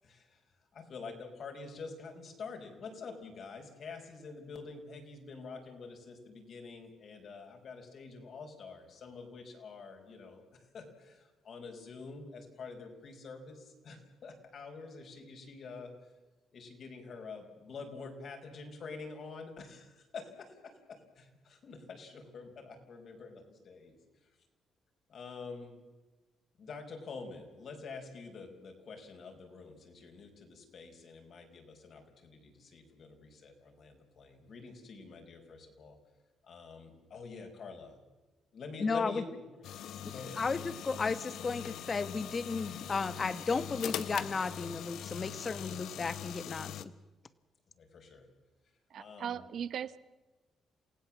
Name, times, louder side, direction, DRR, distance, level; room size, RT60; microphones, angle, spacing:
voice 1, 0.0-0.4 0.7-10.4 10.7-15.9 16.5-24.0 25.1-25.8 26.6-36.0 36.5-38.0 38.5-39.3 40.1-40.4 47.8-48.2 49.0-49.4, left 4 dB, 60° left, 3 dB, 5.1 m, -47 dB
voice 2, 38.8-39.2 40.0-46.9, left 4 dB, 35° left, 14 dB, 1.3 m, -34 dB
sound 1, 39.6-46.8, left 10 dB, 75° left, 1.0 m, -42 dB
voice 3, 48.9-50.0, right 8 dB, 65° right, 16 dB, 1.0 m, -38 dB
28.0 x 17.0 x 7.4 m, 1.2 s
cardioid pair, 90°, 0 cm